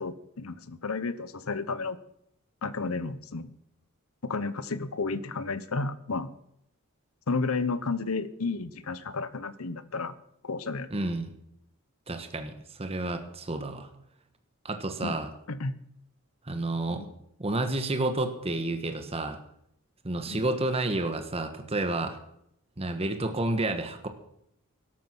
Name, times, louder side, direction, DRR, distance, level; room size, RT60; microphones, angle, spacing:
voice 1, 0.0-2.0 2.6-3.5 4.2-6.3 7.3-10.1 10.4-10.9 15.0-15.2 15.5-15.7 16.9-17.1 20.3-20.4, left 3 dB, 75° left, 15 dB, 0.9 m, -32 dB
voice 2, 10.9-11.4 12.1-13.9 14.6-15.3 16.5-17.0 17.4-19.4 20.0-22.2 22.8-24.1, right 2 dB, 25° right, 7 dB, 1.2 m, -30 dB
12.5 x 12.5 x 6.1 m, 0.76 s
head